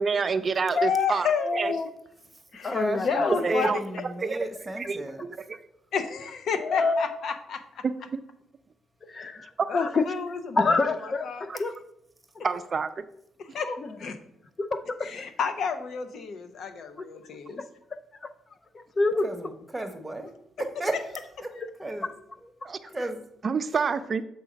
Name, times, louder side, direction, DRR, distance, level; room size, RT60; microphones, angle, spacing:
voice 1, 0.0-1.3 1.5-1.7 3.4-3.8 4.3-4.4 4.9-5.6 7.8-8.2 9.6-9.7 11.5-11.6 12.4-13.0 22.6-22.8 23.4-24.2, right 5 dB, 40° right, 11 dB, 0.4 m, -28 dB
voice 2, 0.7-1.6 2.5-4.0 5.9-7.8 9.7-11.6 13.4-14.2 15.0-17.6, left 6 dB, 65° left, 9 dB, 0.8 m, -31 dB
voice 3, 1.4-1.9 2.6-3.3 6.6-7.1 9.0-10.0 10.6-11.7 13.6-14.0 14.6-15.1 17.0-17.1 17.6-17.7 18.2-18.3 18.7-19.3 21.6-21.7, left 3 dB, 35° left, 8 dB, 0.5 m, -27 dB
voice 4, 2.3-5.2 19.2-20.3 20.6-21.1 21.4-21.5 21.8-22.1 22.4-23.3, right 1 dB, 15° right, 5 dB, 1.0 m, -33 dB
7.3 x 3.7 x 5.1 m, 0.78 s
cardioid pair, 90°, 0 cm